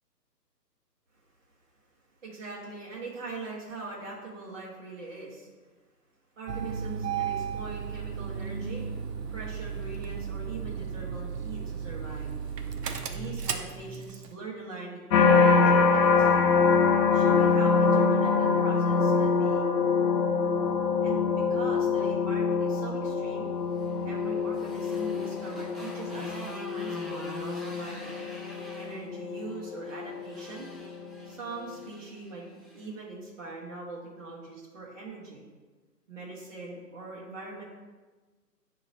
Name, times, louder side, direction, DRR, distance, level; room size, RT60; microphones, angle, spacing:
voice 1, 2.2-5.5 6.4-8.9 9.3-12.3 13.0-16.5 17.1-19.6 21.0-23.5 24.0-28.2 28.8-30.7 31.3-35.5 36.1-37.6, right 3 dB, 50° right, -5 dB, 1.4 m, -41 dB
Engine starting, 6.5-14.3, right 7 dB, 70° right, 0.6 m, -35 dB
sound 1, 15.1-30.3 30.8-31.3, left 5 dB, 80° left, 0.6 m, -25 dB
Motorcycle, 23.4-32.9, equal, ahead, 0.3 m, -46 dB
6.3 x 3.0 x 2.7 m, 1.3 s
hypercardioid pair, 160°, 50 cm